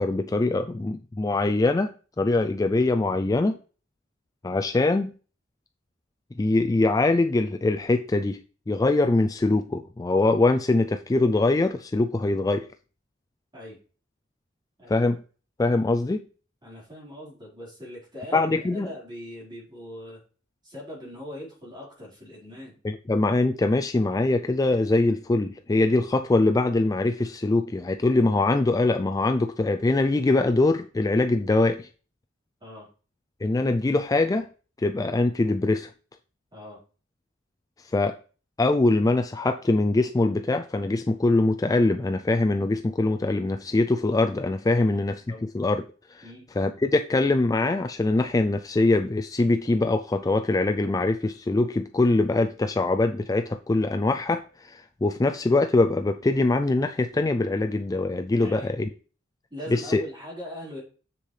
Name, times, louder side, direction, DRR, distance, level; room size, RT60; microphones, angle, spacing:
voice 1, 0.0-3.6 4.4-5.1 6.3-8.4 8.7-12.7 14.9-15.2 15.6-16.2 18.3-18.9 22.8-31.9 33.4-34.5 34.8-35.9 37.9-38.2 38.6-45.8 46.1-46.2 46.6-58.9 59.7-60.0, left 2 dB, 20° left, 0.3 m, -23 dB
voice 2, 16.6-20.2 20.6-22.8 32.6-32.9 36.5-36.8 44.8-45.0 45.3-45.4 46.2-46.5 58.4-58.7 59.5-60.8, equal, 25° right, 4.4 m, -41 dB
7.3 x 6.9 x 3.3 m
head